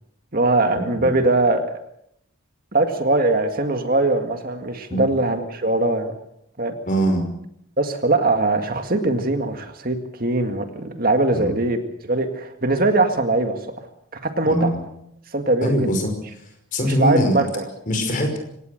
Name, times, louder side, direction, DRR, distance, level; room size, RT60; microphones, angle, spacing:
voice 1, 0.3-1.7 2.7-6.1 6.6-6.7 7.8-13.9 14.1-14.7 15.3-15.9 16.8-17.7, right 2 dB, 45° right, 6 dB, 2.0 m, -21 dB
voice 2, 6.9-7.3 11.3-11.5 14.4-14.8 15.6-16.1 16.7-17.4 17.9-18.4, equal, 40° left, 5 dB, 5.6 m, -21 dB
25.0 x 18.0 x 6.6 m, 0.75 s
head